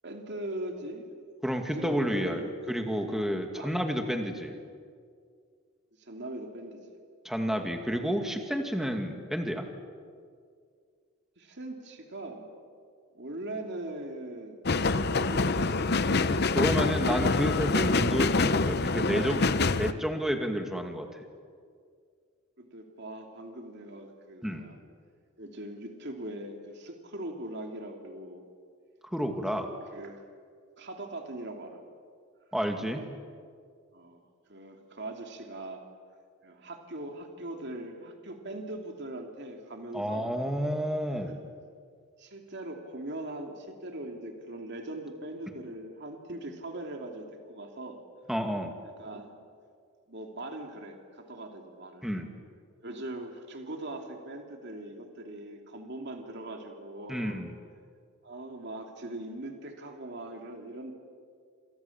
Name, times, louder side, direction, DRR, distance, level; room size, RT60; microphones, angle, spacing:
voice 1, 0.0-1.1 1.5-2.9 3.5-3.7 4.0-4.2 6.0-6.8 11.4-12.5 13.1-15.8 22.6-24.8 25.4-28.4 29.3-29.6 29.9-30.2 30.8-31.8 33.9-34.2 34.5-35.8 36.4-40.3 42.2-48.0 49.0-49.3 50.1-52.1 52.8-57.4 58.2-60.9, right 1 dB, 55° right, 3 dB, 2.8 m, -41 dB
voice 2, 1.4-2.4 2.7-4.5 7.2-9.7 16.5-21.1 24.4-24.6 29.0-29.7 32.5-33.1 39.9-41.4 48.3-48.7 52.0-52.3 57.1-57.5, equal, ahead, 4 dB, 2.3 m, -30 dB
sound 1, 14.7-19.9, left 3 dB, 50° left, 0.8 m, -26 dB
28.5 x 27.0 x 7.3 m, 2.1 s
head